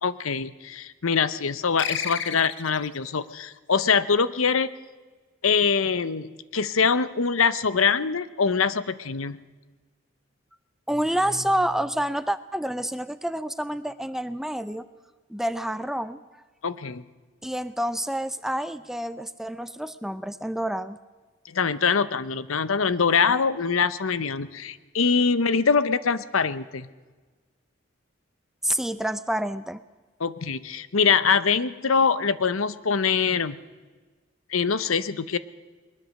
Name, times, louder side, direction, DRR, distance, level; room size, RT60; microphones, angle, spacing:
voice 1, 0.0-4.7 5.4-9.4 16.6-17.0 21.5-26.9 30.2-33.6 34.5-35.4, left 5 dB, 90° left, 15 dB, 0.8 m, -23 dB
sound 1, 1.8-3.0, left 8 dB, 65° left, 1.2 m, -31 dB
voice 2, 10.9-14.8 15.3-16.2 17.4-21.0 28.6-29.8, right 1 dB, ahead, 13 dB, 0.5 m, -28 dB
21.5 x 20.5 x 6.5 m, 1.3 s
head